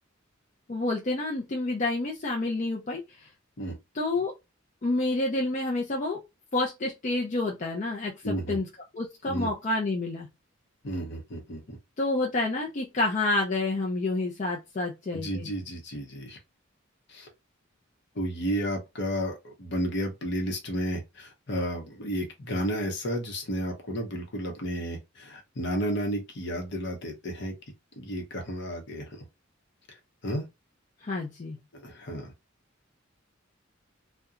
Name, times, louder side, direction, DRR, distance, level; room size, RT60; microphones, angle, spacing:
voice 1, 0.7-3.3 3.9-4.3 4.8-6.2 6.5-8.7 8.9-10.3 12.0-15.5 31.0-31.6, left 2 dB, 40° left, 0.5 m, -29 dB
voice 2, 8.2-8.6 9.3-9.5 10.8-11.8 15.1-16.4 17.1-17.3 18.1-27.5 28.0-29.2 30.2-30.5 31.7-32.3, equal, 60° left, 0.8 m, -32 dB
2.8 x 2.2 x 2.4 m
head